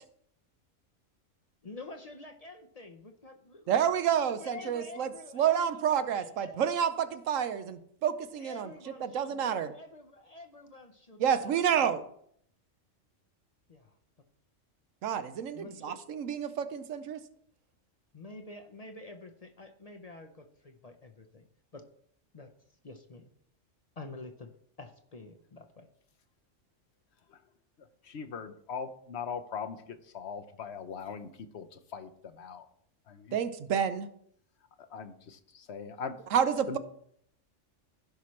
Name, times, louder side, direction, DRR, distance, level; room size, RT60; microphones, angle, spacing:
voice 1, 1.6-3.7 4.3-6.6 8.4-11.9 13.7-14.0 15.5-16.0 18.1-21.9 22.3-22.5 22.8-23.3 24.0-24.5 24.8-25.9, left 2 dB, 40° left, 5 dB, 0.6 m, -48 dB
voice 2, 3.7-8.7 9.0-9.7 11.2-12.0 15.0-17.2 33.3-34.1 36.3-36.8, right 8 dB, 85° right, 11 dB, 1.1 m, -29 dB
voice 3, 28.1-29.8 30.1-31.3 31.5-31.6 31.9-32.1 32.4-32.6 33.1-33.3 34.9-35.4 35.7-36.1 36.7-36.8, left 6 dB, 60° left, 8 dB, 1.0 m, -39 dB
15.0 x 5.8 x 3.2 m, 0.68 s
omnidirectional pair, 1.3 m